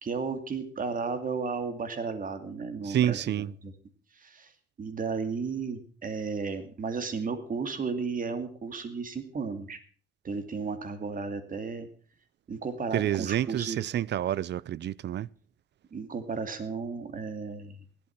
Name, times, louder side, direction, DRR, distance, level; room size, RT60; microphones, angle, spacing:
voice 1, 0.0-3.7 4.1-4.5 4.8-9.8 10.2-11.9 12.5-13.8 15.9-17.8, right 5 dB, 45° right, 2.5 m, -34 dB
voice 2, 2.8-3.5 12.9-15.3, right 11 dB, 60° right, 0.6 m, -28 dB
16.5 x 12.0 x 6.0 m
cardioid pair, 90°, 20 cm